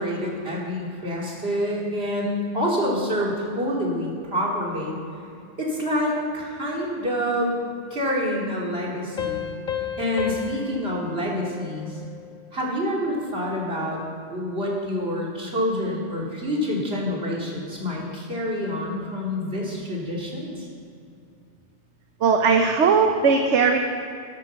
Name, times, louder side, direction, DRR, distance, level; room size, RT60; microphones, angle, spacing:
voice 1, 0.0-5.0 5.6-7.6 7.9-9.5 9.8-12.0 12.5-14.0 14.3-20.7, equal, 55° right, -3 dB, 3.2 m, -27 dB
Piano, 9.2-12.5, left 9 dB, 40° left, 1.2 m, -33 dB
voice 2, 22.2-23.8, right 5 dB, 80° right, 4 dB, 1.2 m, -18 dB
13.0 x 11.0 x 6.9 m, 2.5 s
omnidirectional pair, 1.2 m